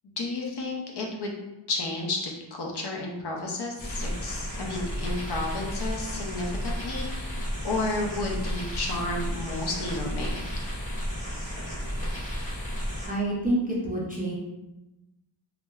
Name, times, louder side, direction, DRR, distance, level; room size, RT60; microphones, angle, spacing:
voice 1, 0.2-1.3 1.7-10.4, left 2 dB, 55° left, 0 dB, 0.5 m, -32 dB
sound 1, 3.8-13.1, equal, 15° left, 0.8 m, -33 dB
voice 2, 13.1-14.3, right 1 dB, 20° right, -6 dB, 0.3 m, -27 dB
2.7 x 2.1 x 2.3 m, 0.99 s
wide cardioid pair, 150°, 48 cm